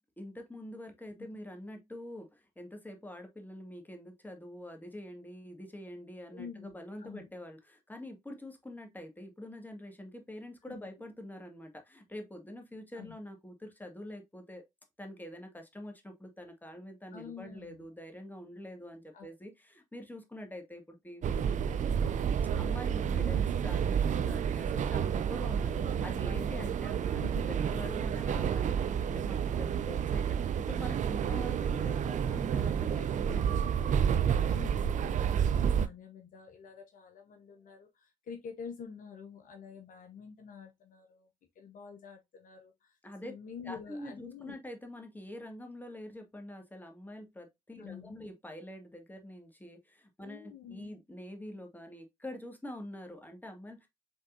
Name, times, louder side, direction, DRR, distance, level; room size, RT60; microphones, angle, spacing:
voice 1, 0.2-14.6 15.0-22.3 22.6-34.7 43.0-43.3 43.6-53.9, left 1 dB, 10° left, 1.8 m, -45 dB
voice 2, 6.3-7.3 10.6-10.9 12.9-13.2 17.1-17.9 19.1-19.3 23.1-23.5 25.7-27.5 34.4-41.3 41.5-44.6 47.8-48.2 50.2-50.9, left 6 dB, 60° left, 0.8 m, -48 dB
sound 1, 21.2-35.9, right 8 dB, 55° right, 0.5 m, -30 dB
5.4 x 3.5 x 2.6 m
hypercardioid pair, 45°, 15 cm